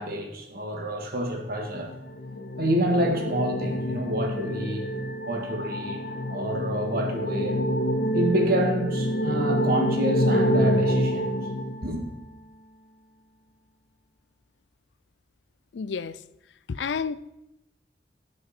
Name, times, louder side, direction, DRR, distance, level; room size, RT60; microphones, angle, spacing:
voice 1, 0.0-1.9 2.6-4.9 5.3-6.0 6.3-7.6 8.1-11.4 11.8-12.0, equal, 55° right, 1.9 m, -28 dB
sound 1, 1.6-12.4, equal, 65° left, 0.8 m, -27 dB
voice 2, 15.7-16.2 16.7-17.2, left 5 dB, 80° left, 0.5 m, -30 dB
16.5 x 6.4 x 4.4 m
head